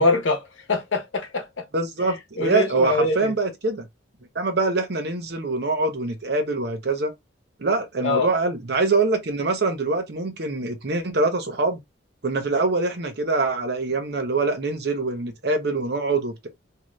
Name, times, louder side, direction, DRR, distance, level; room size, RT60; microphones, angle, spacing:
voice 1, 0.0-1.6 2.4-3.3 8.0-8.3, left 3 dB, 75° left, 0.9 m, -23 dB
voice 2, 1.7-3.9 4.3-7.1 7.6-11.8 12.2-16.5, right 3 dB, 55° right, 0.8 m, -24 dB
2.8 x 2.5 x 3.1 m
head